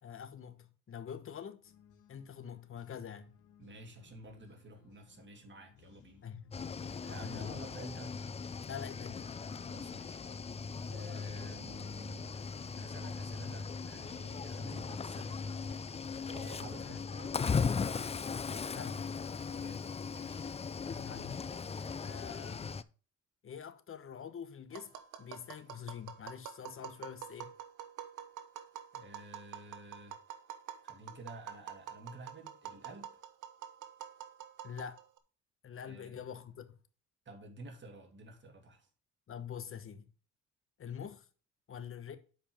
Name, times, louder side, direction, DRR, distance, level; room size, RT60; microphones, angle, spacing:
voice 1, 0.0-1.7 2.1-3.4 6.2-6.5 6.9-7.6 8.7-9.3 16.8-17.0 18.7-19.1 20.9-21.5 22.0-22.8 23.4-27.5 34.6-35.0 35.6-36.8 39.3-40.1 40.8-41.3 41.7-42.2, left 8 dB, 45° left, 1.1 m, -45 dB
sound 1, 1.6-14.8, left 8 dB, 85° left, 1.2 m, -63 dB
voice 2, 3.6-6.2 7.0-8.2 9.6-10.3 10.9-12.5 12.7-17.6 19.6-19.8 20.1-20.5 21.8-22.0 28.9-30.2 30.8-33.1 35.8-36.2 37.3-38.9, right 2 dB, 40° right, 2.5 m, -51 dB
Cricket / Waves surf, 6.5-22.8, left 5 dB, 20° left, 0.4 m, -38 dB
Tap, 24.7-35.2, right 10 dB, 80° right, 1.1 m, -47 dB
7.6 x 5.0 x 5.0 m
cardioid pair, 90°, 30 cm